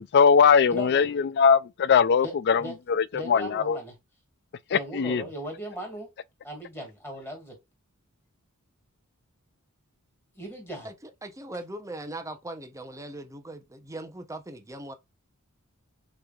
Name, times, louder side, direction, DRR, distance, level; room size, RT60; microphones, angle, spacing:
voice 1, 0.0-2.6 3.3-3.8 4.7-5.2, left 6 dB, 50° left, 0.4 m, -20 dB
voice 2, 0.7-1.1 2.2-2.3 2.6-2.8 3.1-3.9 4.7-6.1 6.4-7.6 10.3-10.9, right 1 dB, 10° left, 2.4 m, -37 dB
voice 3, 10.8-14.9, right 1 dB, 15° right, 0.7 m, -40 dB
6.6 x 3.2 x 2.4 m
head